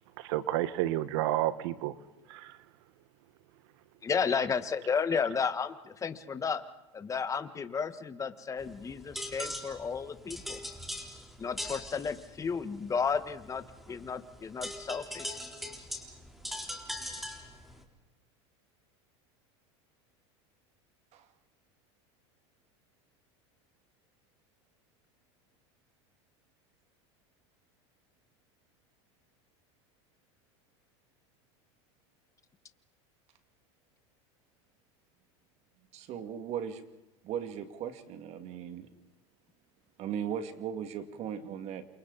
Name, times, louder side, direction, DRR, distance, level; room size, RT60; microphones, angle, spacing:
voice 1, 0.2-1.9 2.3-2.6, right 14 dB, 70° right, 13 dB, 1.5 m, -30 dB
voice 2, 4.0-6.6 6.9-10.6 11.4-15.3, left 6 dB, 20° left, 10 dB, 1.6 m, -33 dB
sound 1, 8.6-17.8, left 1 dB, ahead, 3.9 m, -42 dB
voice 3, 35.9-36.8 37.2-38.9 40.0-41.9, right 8 dB, 50° right, 8 dB, 2.4 m, -37 dB
30.0 x 27.5 x 4.2 m, 1.0 s
supercardioid pair, 115°, 15 cm